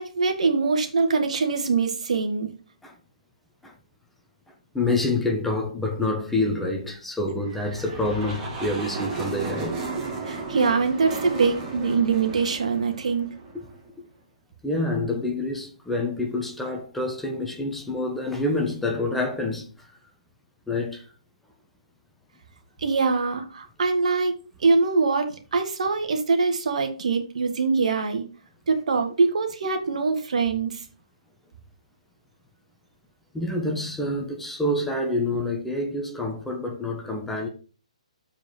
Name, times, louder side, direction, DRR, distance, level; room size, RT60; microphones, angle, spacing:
voice 1, 0.0-2.5 10.3-13.3 22.8-24.3 24.6-28.2 28.7-30.8, right 4 dB, 70° right, 1.8 m, -23 dB
voice 2, 4.7-9.8 13.5-13.6 14.0-14.1 14.6-19.9 20.7-21.0 33.3-37.5, left 2 dB, 5° left, 1.4 m, -27 dB
sound 1, 7.4-13.9, right 4 dB, 20° right, 2.4 m, -34 dB
7.2 x 5.1 x 5.5 m
hypercardioid pair, 140°, 4 cm